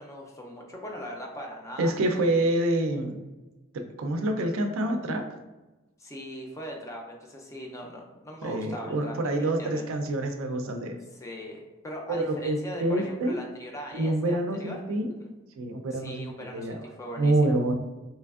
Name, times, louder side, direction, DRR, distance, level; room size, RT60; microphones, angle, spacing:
voice 1, 0.0-2.5 6.0-9.8 11.1-14.8 15.2-15.3 15.9-17.3, equal, 15° left, 0 dB, 0.4 m, -40 dB
voice 2, 1.8-3.2 3.7-5.3 8.4-11.0 12.1-13.4 13.9-15.1 15.6-16.8 17.2-17.7, right 1 dB, 75° right, 5 dB, 0.4 m, -27 dB
3.3 x 3.0 x 2.3 m, 1.1 s
head